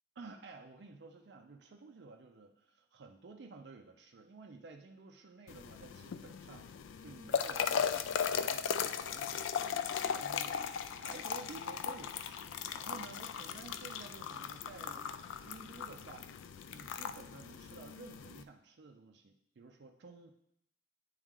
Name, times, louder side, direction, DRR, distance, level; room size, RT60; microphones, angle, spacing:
voice 1, 0.2-6.7 7.0-15.1 15.4-16.3 16.7-20.3, right 3 dB, 65° right, 3 dB, 0.4 m, -52 dB
sound 1, 5.5-18.4, left 7 dB, 85° left, 0.3 m, -38 dB
9.0 x 3.1 x 3.6 m, 0.77 s
head